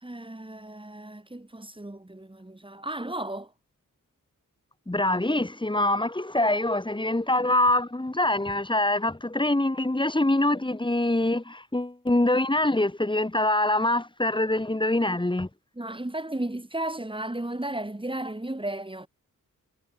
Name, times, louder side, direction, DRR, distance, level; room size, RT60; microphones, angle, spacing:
voice 1, 0.0-3.5 15.8-19.1, right 1 dB, 15° right, 6.5 m, -34 dB
voice 2, 4.9-15.5, left 1 dB, 15° left, 2.9 m, -24 dB
cardioid pair, 70°, 32 cm